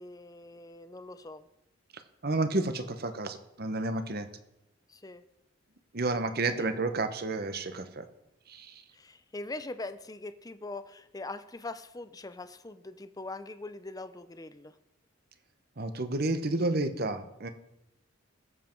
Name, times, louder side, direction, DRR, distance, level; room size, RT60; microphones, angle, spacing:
voice 1, 0.0-1.5 4.9-5.2 6.4-6.8 8.9-14.7, left 2 dB, 20° left, 11 dB, 0.6 m, -42 dB
voice 2, 2.2-4.3 5.9-8.0 8.5-8.7 15.8-17.5, right 2 dB, 50° right, 9 dB, 1.0 m, -30 dB
20.5 x 7.5 x 4.6 m, 0.89 s
head